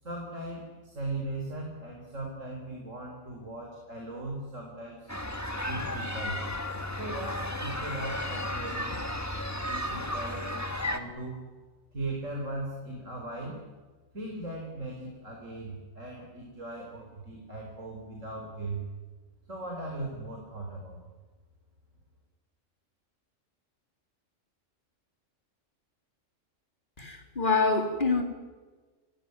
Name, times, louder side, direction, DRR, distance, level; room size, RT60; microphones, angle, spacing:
voice 1, 0.0-5.2 5.6-6.4 7.0-9.0 9.7-11.4 11.9-13.6 14.1-18.8 19.5-21.0, right 2 dB, 75° right, 1 dB, 4.8 m, -38 dB
sound 1, 5.1-11.0, left 1 dB, 15° left, 1.8 m, -34 dB
voice 2, 27.0-28.2, left 4 dB, 40° left, 3 dB, 3.8 m, -26 dB
29.0 x 19.5 x 9.8 m, 1.3 s
omnidirectional pair, 1.3 m